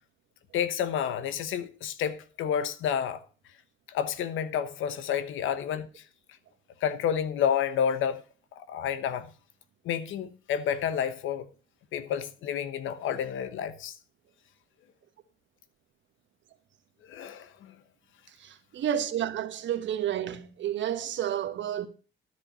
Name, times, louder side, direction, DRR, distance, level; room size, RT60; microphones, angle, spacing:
voice 1, 0.5-3.2 3.9-6.0 6.8-8.2 8.5-9.3 9.8-11.5 11.9-13.9 17.1-17.8, left 8 dB, 80° left, 1.1 m, -30 dB
voice 2, 18.4-21.9, right 10 dB, 70° right, 1.3 m, -30 dB
13.0 x 4.7 x 6.7 m
cardioid pair, 90°, 20 cm